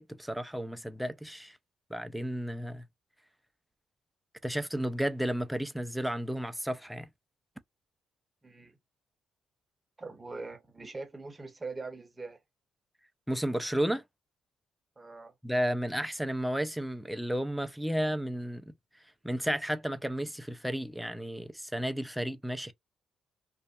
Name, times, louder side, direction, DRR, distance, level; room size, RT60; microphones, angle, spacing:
voice 1, 0.0-1.6 1.9-2.9 4.4-7.1 13.3-14.0 15.4-18.7 19.2-22.7, equal, ahead, 0.4 m, -32 dB
voice 2, 8.4-8.8 10.0-12.4 15.0-15.3, right 3 dB, 20° right, 0.8 m, -42 dB
2.5 x 2.4 x 2.3 m
cardioid pair, 90°, 0 cm